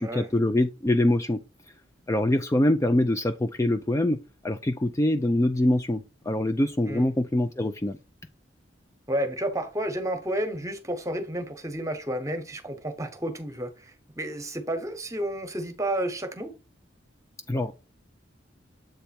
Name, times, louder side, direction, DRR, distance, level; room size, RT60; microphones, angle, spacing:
voice 1, 0.0-1.4 2.1-4.2 4.4-8.0 17.5-17.7, left 1 dB, 15° left, 0.4 m, -24 dB
voice 2, 9.1-16.5, right 1 dB, 15° right, 1.1 m, -31 dB
7.9 x 3.4 x 4.2 m
head